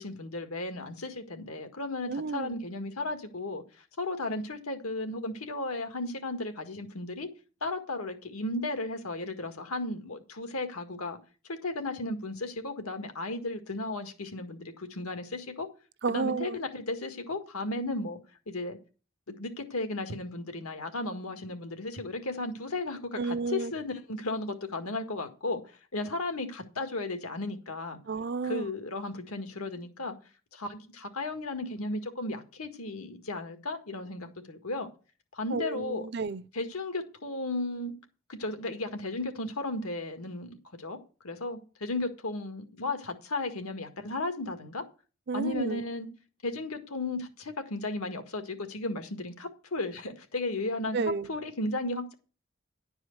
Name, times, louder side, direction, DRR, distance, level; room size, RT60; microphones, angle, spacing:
voice 1, 0.0-7.3 7.6-11.2 11.5-15.7 16.1-18.2 18.5-18.8 19.3-28.0 28.4-30.2 30.5-34.9 35.3-36.1 36.5-37.9 38.3-41.0 41.2-44.8 45.3-46.1 46.4-51.0 51.3-52.1, left 2 dB, 90° left, 1.8 m, -35 dB
voice 2, 2.1-2.6 16.0-16.6 23.2-23.7 28.1-28.7 35.5-36.4 45.3-45.8 50.9-51.3, right 4 dB, 50° right, 0.5 m, -31 dB
11.0 x 4.8 x 7.9 m
head